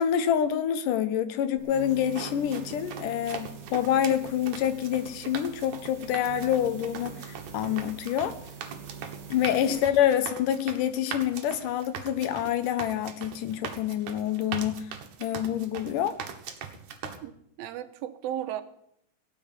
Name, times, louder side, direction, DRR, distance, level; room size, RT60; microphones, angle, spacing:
voice 1, 0.0-8.4 9.3-14.9 15.2-16.2, left 10 dB, 70° left, 11 dB, 2.4 m, -27 dB
sound 1, 1.6-9.8, right 6 dB, 40° right, 2.3 m, -44 dB
sound 2, 1.9-17.2, right 7 dB, 65° right, 2.6 m, -41 dB
voice 2, 17.2-18.6, right 11 dB, 90° right, 10 dB, 2.8 m, -35 dB
17.0 x 6.9 x 9.8 m, 0.72 s
omnidirectional pair, 4.2 m